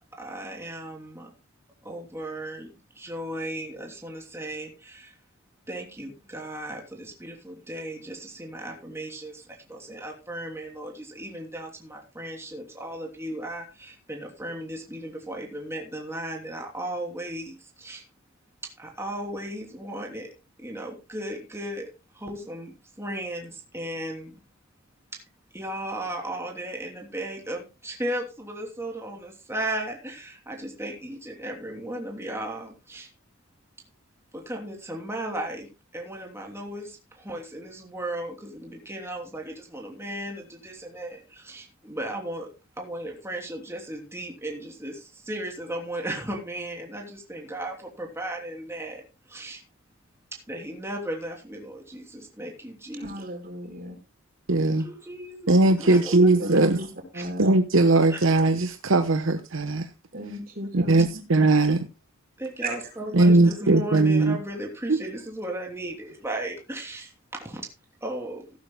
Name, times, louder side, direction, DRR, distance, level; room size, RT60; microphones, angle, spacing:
voice 1, 0.2-1.3 1.8-5.1 5.7-18.0 18.6-20.3 20.6-24.4 25.1-25.2 25.5-33.1 34.3-42.5 42.8-49.0 49.3-49.6 50.3-53.2 54.6-56.6 57.1-57.2 58.1-58.2 62.4-67.6 68.0-68.4, right 1 dB, 15° right, 3.0 m, -36 dB
voice 2, 52.9-54.0 56.4-56.5 56.8-56.9 57.1-57.6 60.1-61.0 62.6-62.8, right 1 dB, 45° right, 4.9 m, -35 dB
voice 3, 54.5-54.9 55.5-56.8 57.4-59.9 60.7-61.9 63.1-64.4 64.9-65.0, right 2 dB, 70° right, 1.0 m, -19 dB
16.0 x 12.0 x 2.2 m
head